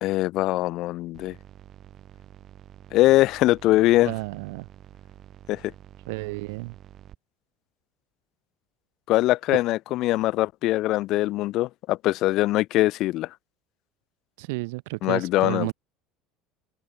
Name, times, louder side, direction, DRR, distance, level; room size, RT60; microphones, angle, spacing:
voice 1, 0.0-1.3 2.9-4.1 5.5-5.6 9.1-13.3 15.0-15.7, left 17 dB, 50° left, 0.5 m, -22 dB
sound 1, 1.1-7.1, right 11 dB, 40° right, 6.1 m, -48 dB
voice 2, 4.0-4.7 6.1-6.7 14.4-15.7, right 26 dB, 85° right, 2.6 m, -32 dB
open air
cardioid pair, 150°, 0 cm